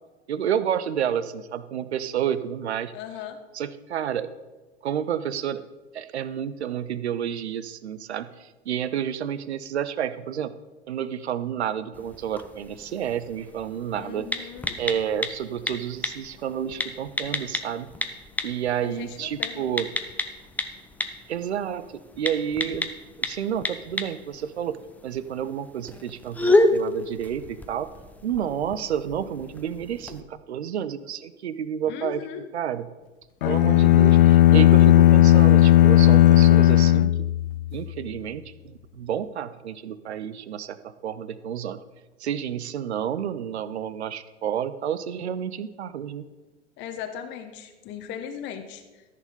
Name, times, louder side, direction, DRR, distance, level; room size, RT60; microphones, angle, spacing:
voice 1, 0.3-2.9 3.5-4.3 4.8-5.6 5.9-10.5 10.9-14.5 14.8-17.9 18.4-19.9 21.3-22.9 23.2-27.9 28.2-32.2 32.5-32.8 33.4-37.3 37.7-41.8 42.2-46.3, right 9 dB, 65° right, 15 dB, 0.8 m, -30 dB
voice 2, 2.9-3.4 13.9-14.8 18.8-19.7 31.9-32.5 46.8-49.0, left 8 dB, 30° left, 6 dB, 1.1 m, -38 dB
sound 1, 11.9-30.2, left 2 dB, 5° left, 0.7 m, -31 dB
sound 2, 33.4-37.8, left 13 dB, 50° left, 0.5 m, -15 dB
14.0 x 6.7 x 5.4 m, 1.2 s
figure-of-eight pair, 90°, 35 cm